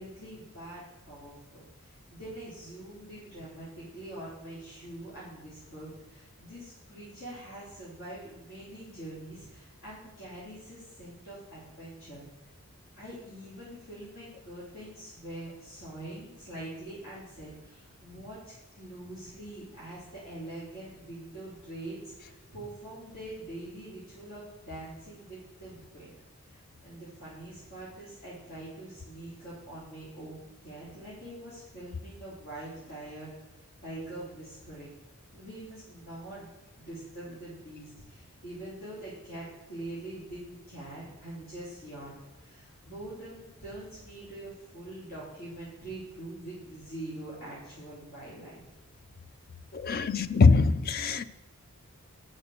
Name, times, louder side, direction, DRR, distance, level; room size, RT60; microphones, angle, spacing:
voice 1, 0.0-12.2 13.0-26.1 26.5-33.3 33.8-34.9 35.3-36.5 36.8-42.1 42.4-48.6 50.0-50.3, right 1 dB, 70° left, 3.6 m, -44 dB
voice 2, 49.7-51.2, left 4 dB, 40° left, 0.5 m, -22 dB
9.1 x 6.5 x 6.7 m
head